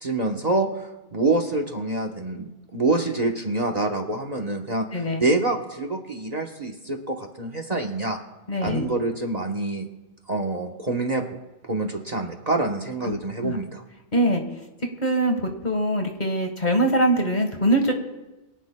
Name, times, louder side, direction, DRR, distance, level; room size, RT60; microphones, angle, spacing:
voice 1, 0.0-8.2 8.6-9.9 10.3-11.2 11.6-13.8, right 2 dB, 35° right, 4 dB, 1.1 m, -26 dB
voice 2, 4.9-5.2 8.5-8.8 13.1-13.2 13.4-13.6 14.1-14.4 15.0-15.4 15.6-17.9, right 1 dB, 40° left, 4 dB, 1.6 m, -22 dB
23.0 x 17.0 x 2.2 m, 1.0 s
omnidirectional pair, 1.2 m